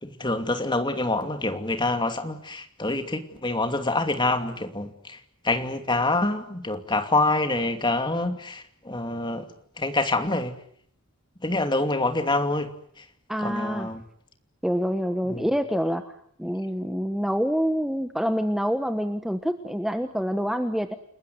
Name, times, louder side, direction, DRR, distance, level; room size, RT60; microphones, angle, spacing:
voice 1, 0.0-9.5 9.8-10.5 11.4-12.7 13.0-13.1 13.4-14.0 15.2-15.5, left 2 dB, 20° left, 7 dB, 2.7 m, -26 dB
voice 2, 13.3-13.9 14.6-16.1 16.4-21.0, equal, ahead, 7 dB, 1.3 m, -26 dB
30.0 x 20.5 x 9.5 m, 0.66 s
head